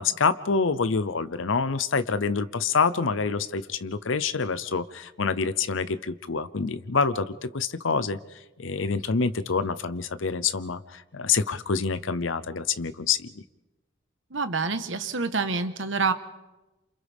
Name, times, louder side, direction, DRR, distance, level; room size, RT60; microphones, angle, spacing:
voice 1, 0.0-8.2 8.6-13.3, left 5 dB, 85° left, 13 dB, 0.7 m, -26 dB
voice 2, 14.3-16.1, right 4 dB, 70° right, 9 dB, 1.3 m, -27 dB
29.0 x 27.5 x 3.6 m, 1.1 s
head